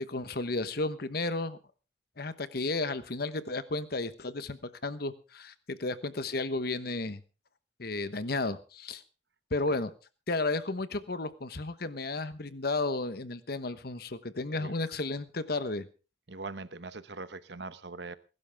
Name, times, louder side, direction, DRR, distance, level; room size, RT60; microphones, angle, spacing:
voice 1, 0.1-1.6 2.2-7.2 7.8-9.0 9.5-9.9 10.3-15.9, left 2 dB, 55° left, 12 dB, 1.1 m, -33 dB
voice 2, 16.3-18.2, right 3 dB, 65° right, 13 dB, 1.0 m, -42 dB
21.5 x 12.0 x 3.5 m, 0.34 s
head